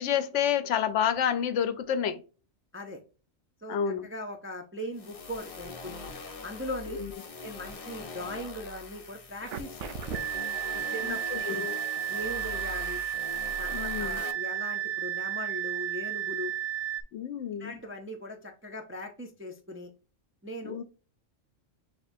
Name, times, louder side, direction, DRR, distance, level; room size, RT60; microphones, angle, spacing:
voice 1, 0.0-2.2 3.7-4.1 6.9-7.1 11.0-11.7 13.7-14.2 17.1-17.7 20.6-20.8, left 8 dB, 70° left, 0.9 m, -29 dB
voice 2, 3.6-6.1 6.4-7.0 7.4-10.2 10.7-11.8 12.1-13.0 13.6-16.5 17.6-19.9 20.4-20.8, left 1 dB, 15° right, 0.4 m, -39 dB
sound 1, 4.9-14.3, left 3 dB, 35° left, 0.6 m, -42 dB
sound 2, 9.4-17.0, right 11 dB, 70° right, 0.9 m, -33 dB
6.7 x 2.9 x 2.6 m
omnidirectional pair, 1.3 m